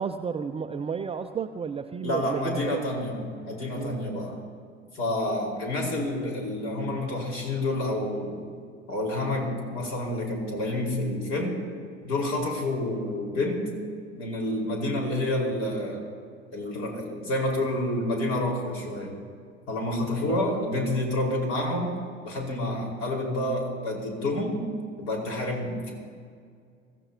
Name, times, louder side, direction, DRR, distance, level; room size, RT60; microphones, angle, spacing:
voice 1, 0.0-2.9 3.7-4.1 20.2-20.5, right 6 dB, 15° right, 8 dB, 0.5 m, -32 dB
voice 2, 2.0-3.2 3.4-4.4 4.9-8.4 8.9-11.6 12.0-13.6 14.1-16.0 16.5-19.2 19.7-21.9 22.2-24.6 25.0-25.9, left 1 dB, 45° left, 0 dB, 4.9 m, -28 dB
24.0 x 15.0 x 2.9 m, 2.1 s
figure-of-eight pair, 70°, 34 cm